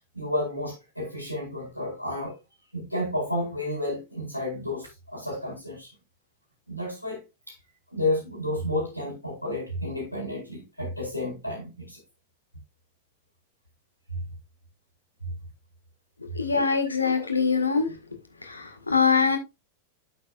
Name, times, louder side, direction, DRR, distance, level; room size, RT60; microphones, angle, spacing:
voice 1, 0.1-2.3 2.7-5.9 6.7-7.2 7.5-7.6 7.9-12.0 16.5-16.6, left 1 dB, 90° right, 4.6 m, -31 dB
voice 2, 16.2-18.0 18.4-19.4, left 5 dB, 80° left, 1.7 m, -24 dB
8.5 x 8.4 x 2.5 m
figure-of-eight pair, 90°, 0 cm